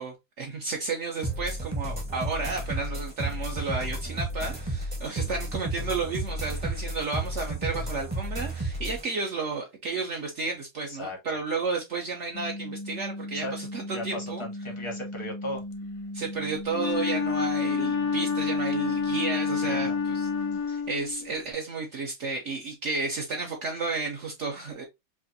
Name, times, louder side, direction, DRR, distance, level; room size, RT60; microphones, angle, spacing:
voice 1, 0.0-14.4 16.1-20.3 20.7-24.8, right 4 dB, 75° right, 0.6 m, -32 dB
sound 1, 1.2-9.0, right 1 dB, 25° right, 0.6 m, -32 dB
voice 2, 2.7-3.0 10.9-11.2 13.3-13.5 13.9-15.6 19.6-20.0 20.7-20.8, left 1 dB, 30° left, 0.5 m, -37 dB
sound 2, 12.3-20.6, left 1 dB, 80° left, 1.4 m, -38 dB
Wind instrument woodwind instrument, 16.7-21.5, left 5 dB, 65° left, 0.9 m, -28 dB
4.8 x 2.5 x 2.7 m
omnidirectional pair, 2.1 m